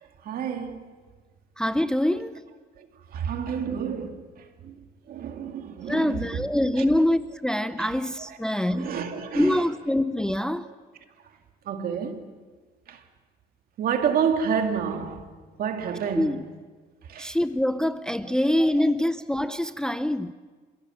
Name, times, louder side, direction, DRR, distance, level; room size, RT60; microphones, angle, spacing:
voice 1, 0.2-0.9 3.1-4.2 4.6-4.7 5.1-6.4 6.8-6.9 7.8-7.9 8.5-9.6 11.7-12.2 12.9-13.0 13.8-15.2 15.6-16.3 17.1-17.3, right 7 dB, 60° right, 2.5 m, -29 dB
voice 2, 1.6-2.4 5.9-9.0 9.3-10.7 16.1-16.4 17.2-20.3, left 1 dB, 5° left, 0.6 m, -25 dB
27.5 x 16.5 x 7.9 m
cardioid pair, 110°, 17 cm